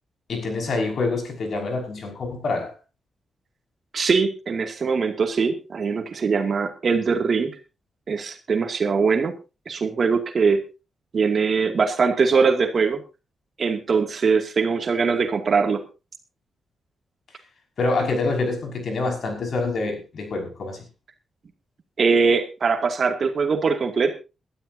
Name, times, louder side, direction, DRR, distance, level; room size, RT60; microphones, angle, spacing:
voice 1, 0.3-2.7 17.8-20.8, left 3 dB, 60° left, 3 dB, 5.7 m, -26 dB
voice 2, 3.9-7.5 8.1-9.3 9.7-10.6 11.1-13.0 13.6-15.8 22.0-24.1, right 5 dB, 50° right, 4 dB, 2.3 m, -21 dB
21.5 x 13.0 x 2.8 m, 0.30 s
wide cardioid pair, 120°, 0 cm